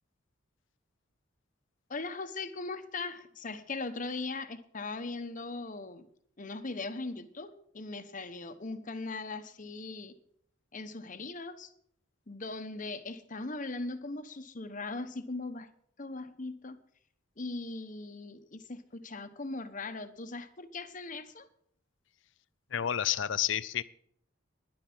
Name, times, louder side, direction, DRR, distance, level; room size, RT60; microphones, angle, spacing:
voice 1, 1.9-6.1 6.4-10.2 10.7-11.7 12.3-15.7 16.0-16.8 17.4-21.5, left 3 dB, 40° left, 1.1 m, -39 dB
voice 2, 22.7-23.8, left 10 dB, 65° left, 0.5 m, -30 dB
11.5 x 11.0 x 6.1 m
head